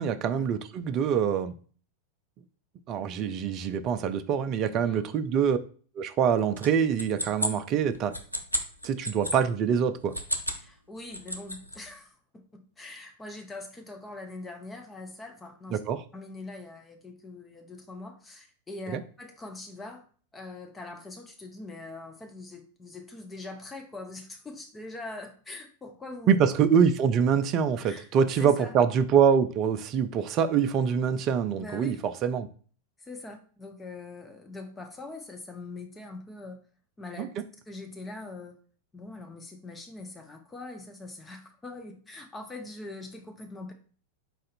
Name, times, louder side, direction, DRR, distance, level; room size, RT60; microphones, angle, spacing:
voice 1, 0.0-1.5 2.9-5.6 6.0-8.1 8.8-10.1 15.7-16.0 18.9-19.0 26.3-32.5 37.2-37.3, right 7 dB, 35° right, 0.4 m, -25 dB
sound 1, 6.6-9.4 10.0-10.7 11.0-11.8, equal, 90° right, 0.5 m, -32 dB
voice 2, 10.6-15.8 16.1-20.0 20.3-26.4 27.8-28.1 28.4-28.8 31.6-32.0 33.0-36.6 37.0-37.3 37.7-38.6 38.9-43.7, left 2 dB, 15° left, 0.6 m, -42 dB
4.2 x 2.5 x 4.1 m
figure-of-eight pair, 90°, 0 cm